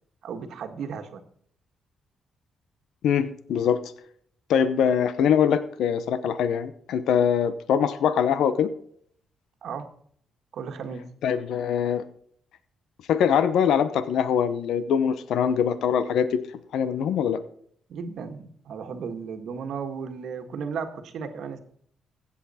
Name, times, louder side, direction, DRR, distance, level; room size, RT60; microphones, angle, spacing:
voice 1, 0.2-1.2 9.6-9.9 10.5-11.1 17.9-21.6, right 6 dB, 70° right, 7 dB, 1.5 m, -35 dB
voice 2, 3.0-3.8 4.5-8.7 11.2-12.0 13.1-16.4 16.7-17.4, left 8 dB, 85° left, 13 dB, 0.8 m, -23 dB
15.5 x 8.4 x 4.2 m, 0.62 s
cardioid pair, 100°, 0 cm